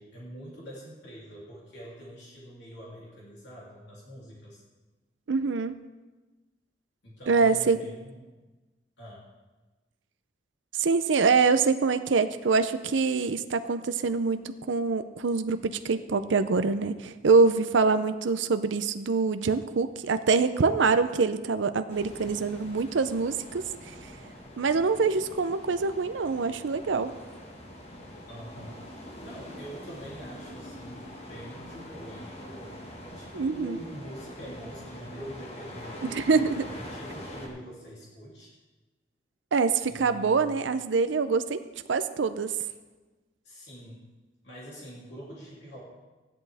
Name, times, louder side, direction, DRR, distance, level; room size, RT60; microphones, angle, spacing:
voice 1, 0.0-4.6 7.0-8.3 9.0-9.2 28.3-28.8 29.2-32.7 33.1-38.5 39.9-40.6 43.4-44.1 44.4-45.8, equal, 70° left, -6 dB, 3.0 m, -44 dB
voice 2, 5.3-5.7 7.3-7.8 10.7-24.0 24.6-27.1 33.3-33.8 36.0-36.6 39.5-41.6 41.9-42.5, right 4 dB, 90° right, 10 dB, 0.5 m, -25 dB
sound 1, 21.9-37.5, left 1 dB, 35° left, 1.6 m, -44 dB
14.5 x 11.0 x 3.5 m, 1.2 s
head